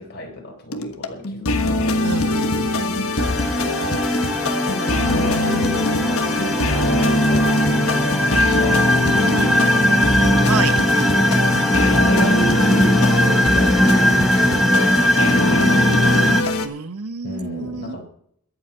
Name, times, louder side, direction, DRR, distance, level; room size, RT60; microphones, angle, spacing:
voice 1, 0.0-1.9 2.7-4.0 4.6-7.5 8.3-8.9 9.2-10.6 11.1-11.6 11.9-16.4 17.2-18.0, left 1 dB, 50° left, 1 dB, 4.2 m, -34 dB
sound 1, 0.7-16.7, left 2 dB, 70° left, 1.4 m, -22 dB
voice 2, 2.0-2.7 9.4-9.6 10.4-10.7 16.6-18.0, right 5 dB, 90° right, 13 dB, 0.9 m, -29 dB
sound 2, 3.2-16.4, equal, ahead, 1.0 m, -19 dB
22.5 x 8.1 x 4.4 m, 0.66 s
head